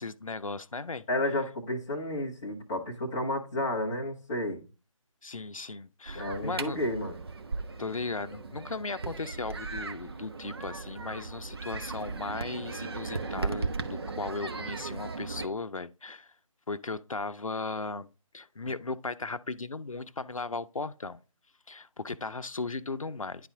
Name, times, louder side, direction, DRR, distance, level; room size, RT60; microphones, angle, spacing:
voice 1, 0.0-1.0 5.2-6.8 7.8-16.3 16.7-18.1 18.3-21.2 21.7-23.5, left 3 dB, 75° left, 0.6 m, -37 dB
voice 2, 1.1-4.6 6.1-7.2, left 1 dB, 5° left, 0.5 m, -31 dB
sound 1, 6.1-15.5, right 4 dB, 45° right, 0.8 m, -37 dB
10.0 x 4.2 x 3.6 m
figure-of-eight pair, 155°, 18 cm